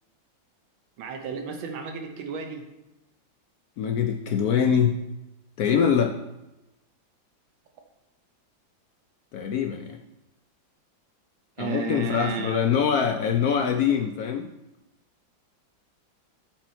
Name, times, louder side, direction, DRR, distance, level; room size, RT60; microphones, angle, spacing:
voice 1, 1.0-2.6 11.6-12.7, right 4 dB, 85° right, 4 dB, 1.6 m, -32 dB
voice 2, 3.8-5.0 5.6-6.1 9.3-10.0 11.6-14.5, left 7 dB, 70° left, 4 dB, 0.9 m, -23 dB
10.5 x 4.5 x 4.4 m, 0.96 s
omnidirectional pair, 2.1 m